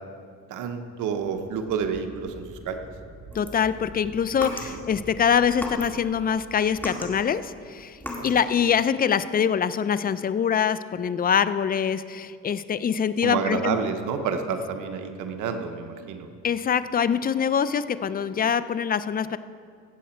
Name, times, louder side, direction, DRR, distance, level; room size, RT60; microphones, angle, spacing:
voice 1, 0.5-2.8 4.7-4.8 8.2-8.3 13.2-16.3, right 6 dB, 85° right, 6 dB, 0.9 m, -29 dB
sound 1, 1.2-7.5, right 2 dB, 40° right, 2.3 m, -47 dB
voice 2, 3.3-8.0 8.2-13.8 16.4-19.4, left 7 dB, 30° left, 14 dB, 0.4 m, -24 dB
sound 2, 3.3-5.0 5.5-6.2 6.5-8.5, left 1 dB, 5° left, 2.0 m, -36 dB
16.0 x 7.6 x 4.4 m, 2.2 s
cardioid pair, 90°, 30 cm